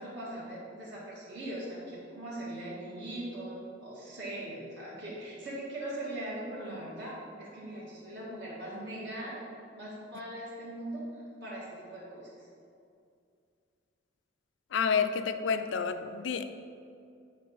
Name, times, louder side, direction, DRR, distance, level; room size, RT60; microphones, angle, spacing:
voice 1, 0.0-9.4 9.8-11.0 11.4-12.5, right 1 dB, 60° right, -8 dB, 1.7 m, -40 dB
voice 2, 14.7-16.4, left 6 dB, 65° left, 10 dB, 0.4 m, -29 dB
8.3 x 4.6 x 4.0 m, 2.4 s
head